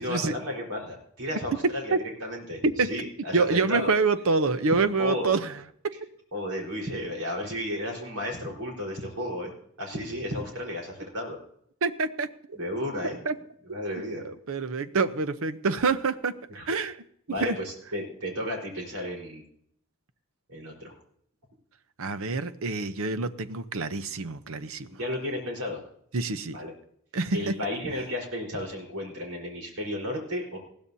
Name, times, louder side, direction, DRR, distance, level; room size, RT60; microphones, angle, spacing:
voice 1, 0.0-2.6 2.9-3.9 5.0-5.4 6.3-9.5 9.8-11.4 12.5-13.2 13.7-14.3 16.5-16.7 17.3-19.4 20.5-20.9 24.9-25.8 26.5-26.7 27.3-30.6, left 1 dB, 85° right, 0 dB, 4.3 m, -33 dB
voice 2, 3.3-5.9 11.8-12.6 13.0-13.4 14.2-16.4 16.7-17.0 17.4-17.6 22.0-24.9 26.1-26.6 27.1-27.6, right 4 dB, 65° right, 12 dB, 0.8 m, -27 dB
20.0 x 15.5 x 2.8 m, 0.69 s
head